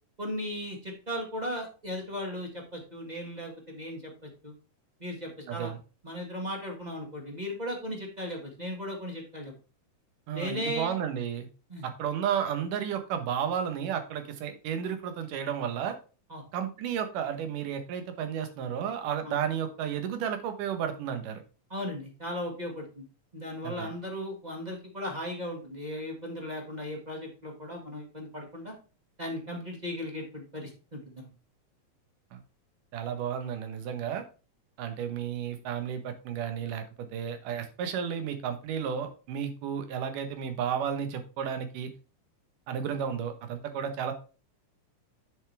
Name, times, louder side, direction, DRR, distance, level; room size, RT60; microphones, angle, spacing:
voice 1, 0.2-4.5 5.0-5.7 6.0-9.5 10.3-10.9 11.7-11.9 16.3-16.4 19.2-19.3 21.7-23.0 23.3-28.7 29.2-31.3, equal, 20° right, 1 dB, 1.2 m, -37 dB
voice 2, 5.5-5.8 10.3-11.5 11.8-16.0 16.5-21.4 23.6-23.9 32.3-32.4 32.9-34.2 34.8-41.9 42.7-44.1, right 8 dB, 90° right, 8 dB, 2.8 m, -32 dB
8.1 x 6.9 x 3.4 m, 0.34 s
omnidirectional pair, 3.6 m